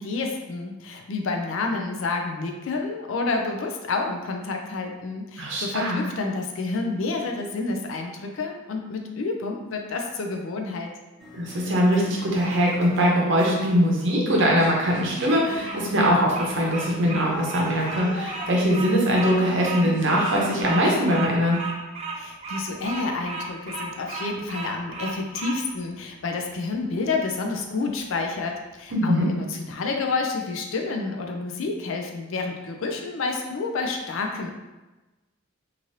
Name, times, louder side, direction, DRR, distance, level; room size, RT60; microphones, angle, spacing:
voice 1, 0.0-10.9 22.1-34.5, left 3 dB, 60° left, 3 dB, 0.4 m, -29 dB
voice 2, 5.4-6.0 11.3-21.6 28.9-29.3, equal, 55° right, -2 dB, 0.7 m, -22 dB
sound 1, 11.2-20.6, equal, 5° left, 0.9 m, -40 dB
Bird vocalization bird call bird song, 14.7-25.6, right 3 dB, 30° right, 0.4 m, -34 dB
3.1 x 2.5 x 2.7 m, 1.1 s
head